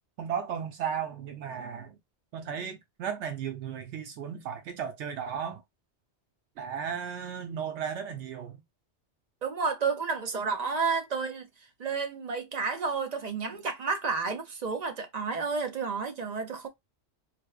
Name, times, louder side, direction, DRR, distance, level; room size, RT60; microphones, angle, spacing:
voice 1, 0.2-2.0 2.3-5.6 6.6-8.6, right 7 dB, 85° right, 0.9 m, -35 dB
voice 2, 9.4-11.5 11.8-16.7, right 5 dB, 45° right, 0.6 m, -31 dB
4.2 x 2.1 x 2.3 m
omnidirectional pair, 1.1 m